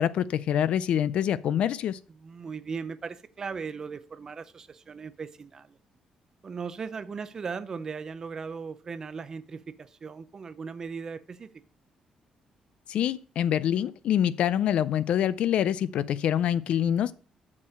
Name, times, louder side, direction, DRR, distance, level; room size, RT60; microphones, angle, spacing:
voice 1, 0.0-2.0 12.9-17.1, left 10 dB, 60° left, 0.5 m, -25 dB
voice 2, 2.1-5.8 6.4-11.5, right 5 dB, 30° right, 0.6 m, -38 dB
7.2 x 6.6 x 6.3 m
cardioid pair, 170°, 2 cm